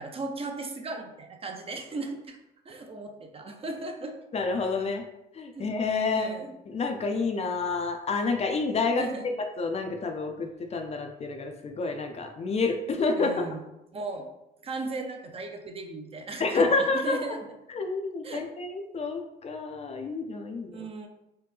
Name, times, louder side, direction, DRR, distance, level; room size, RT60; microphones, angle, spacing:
voice 1, 0.0-2.4 2.6-4.1 5.5-5.7 6.1-6.5 9.0-9.2 13.2-13.6 13.9-14.3 14.6-17.5 18.2-18.5 20.7-21.1, right 3 dB, 30° right, 4 dB, 0.5 m, -37 dB
voice 2, 4.3-5.0 5.3-6.3 6.7-9.1 9.6-13.4 16.4-17.4 17.7-20.9, left 3 dB, 35° left, 5 dB, 0.4 m, -29 dB
3.3 x 2.1 x 3.2 m, 0.88 s
cardioid pair, 85°, 18 cm